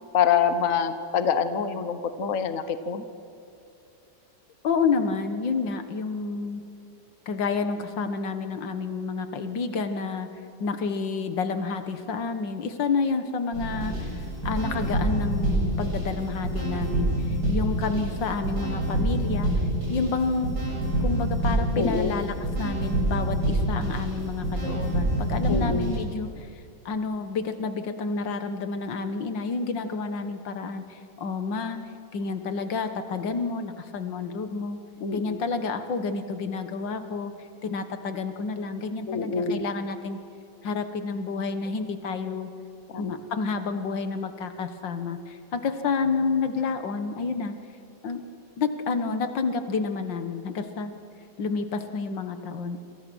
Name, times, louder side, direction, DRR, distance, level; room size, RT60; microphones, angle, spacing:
voice 1, 0.1-3.0 21.8-22.1 25.5-25.9 35.0-35.4 39.1-39.6 42.9-43.2, left 7 dB, 50° left, 10 dB, 1.5 m, -26 dB
voice 2, 4.6-6.6 7.3-10.3 10.6-19.5 19.9-20.5 21.0-26.5 26.9-31.8 32.1-34.8 35.1-37.3 37.6-40.2 40.6-42.5 43.0-47.6 48.0-48.2 48.6-50.9 51.4-52.8, left 4 dB, 80° left, 8 dB, 2.0 m, -29 dB
sound 1, 13.5-26.0, right 1 dB, 60° right, 7.3 m, -27 dB
27.5 x 27.5 x 6.3 m, 2.5 s
omnidirectional pair, 2.0 m